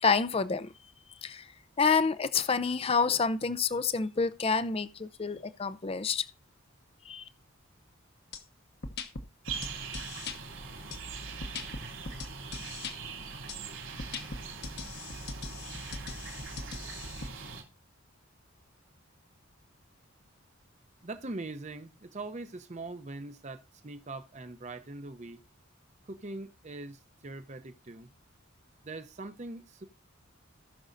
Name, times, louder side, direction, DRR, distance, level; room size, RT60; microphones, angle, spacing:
voice 1, 0.0-0.7 1.2-1.4 1.8-6.3 7.1-7.2, left 5 dB, 30° left, 0.5 m, -28 dB
sound 1, 8.3-8.4 8.8-10.4 10.9-12.9 13.5-13.6 14.0-17.3, left 3 dB, 50° left, 1.1 m, -40 dB
sound 2, 9.4-17.6, right 5 dB, 75° right, 3.0 m, -42 dB
voice 2, 21.0-25.4 26.1-28.1 28.8-29.9, right 2 dB, 35° right, 0.7 m, -42 dB
18.0 x 6.2 x 2.6 m
head